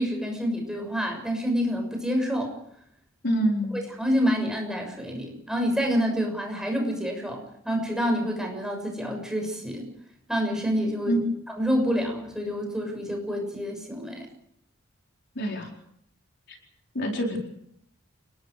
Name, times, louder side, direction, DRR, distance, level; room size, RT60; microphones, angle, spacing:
voice 1, 0.0-2.5 4.0-9.9 10.3-11.2 11.5-14.3, equal, 5° right, 2 dB, 6.7 m, -27 dB
voice 2, 3.2-3.8 11.1-11.2 15.4-15.7 16.5-16.6 16.9-17.4, right 1 dB, 55° left, 1 dB, 4.4 m, -26 dB
29.0 x 20.0 x 5.0 m, 0.73 s
head